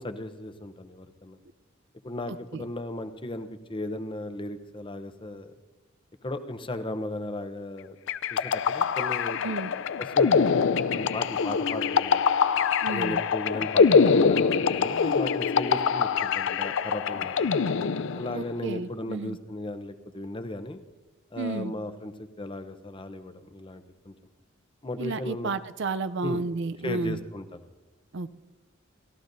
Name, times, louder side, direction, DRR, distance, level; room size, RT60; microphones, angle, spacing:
voice 1, 0.0-1.4 2.0-5.5 6.2-8.0 8.3-9.4 10.0-10.4 10.9-12.2 12.9-17.4 18.1-20.8 21.3-22.1 22.4-24.1 24.8-25.5 26.2-26.4 26.8-27.6, left 1 dB, 25° left, 9 dB, 0.8 m, -36 dB
voice 2, 2.3-2.6 9.4-9.7 12.8-13.2 18.3-19.4 21.4-21.7 25.0-27.2 28.1-28.3, right 3 dB, 60° right, 13 dB, 0.5 m, -32 dB
sound 1, 8.1-18.5, left 5 dB, 65° left, 0.4 m, -24 dB
29.5 x 14.5 x 2.7 m, 1.2 s
head